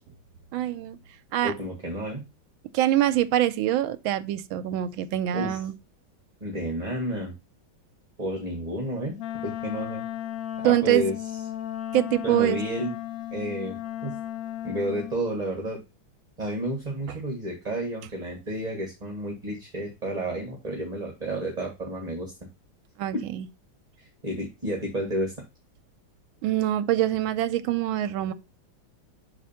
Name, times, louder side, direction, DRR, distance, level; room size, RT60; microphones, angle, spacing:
voice 1, 0.5-1.0 1.3-1.5 2.7-5.7 10.6-11.1 11.9-12.6 23.0-23.5 26.4-28.3, right 13 dB, 80° right, 1.4 m, -24 dB
voice 2, 1.4-2.2 5.3-5.6 6.4-7.3 8.2-9.1 9.4-10.0 10.6-11.1 12.2-13.0 13.3-13.8 14.0-14.2 14.6-15.8 16.4-22.3 23.1-23.2 24.0-25.3, right 1 dB, 20° right, 1.5 m, -31 dB
Wind instrument woodwind instrument, 9.2-15.3, left 12 dB, 75° left, 0.8 m, -35 dB
6.2 x 4.3 x 5.6 m
omnidirectional pair, 2.2 m